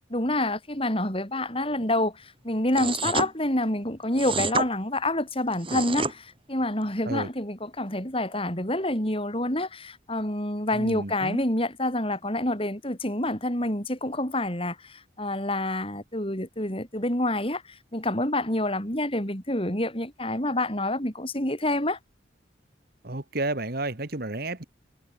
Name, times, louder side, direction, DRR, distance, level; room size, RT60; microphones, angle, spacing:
voice 1, 0.1-22.0, left 1 dB, 30° left, 7.2 m, -27 dB
sound 1, 2.7-3.3 4.2-4.7 5.5-6.1, right 4 dB, 30° right, 5.7 m, -28 dB
voice 2, 10.7-11.4 23.0-24.6, right 2 dB, 55° right, 2.1 m, -31 dB
head